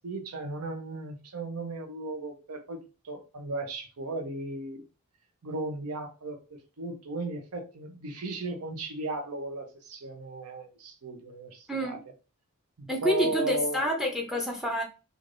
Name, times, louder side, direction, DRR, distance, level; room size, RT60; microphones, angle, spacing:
voice 1, 0.0-4.8 5.4-12.0 12.8-13.8, right 2 dB, 85° right, 0.7 m, -36 dB
voice 2, 11.7-12.0 12.9-14.8, equal, ahead, 0.5 m, -28 dB
3.2 x 2.4 x 2.5 m
head